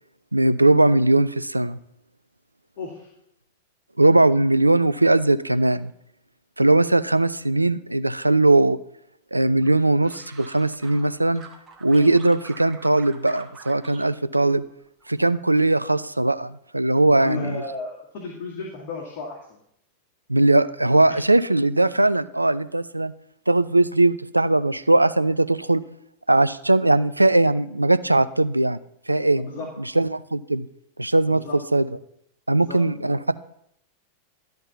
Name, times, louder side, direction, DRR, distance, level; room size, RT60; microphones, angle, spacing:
voice 1, 0.3-1.8 4.0-5.9 6.6-8.8 9.3-11.4 11.8-14.6 15.1-17.6 20.3-23.1 23.5-25.8 26.3-28.8 29.1-29.5 29.9-30.7 31.0-31.4 31.7-31.9 32.5-33.3, right 2 dB, 85° right, 14 dB, 0.4 m, -19 dB
voice 2, 2.8-3.1 11.9-12.2 17.1-19.4 21.1-21.2 29.3-29.7 31.3-31.6 32.5-33.2, left 4 dB, 45° left, -3 dB, 2.0 m, -34 dB
sound 1, 9.6-11.1 11.4-14.0 14.3-15.1 15.4-15.9, right 5 dB, 25° right, 1.6 m, -46 dB
11.5 x 4.4 x 6.9 m, 0.73 s
figure-of-eight pair, 90°, 0 cm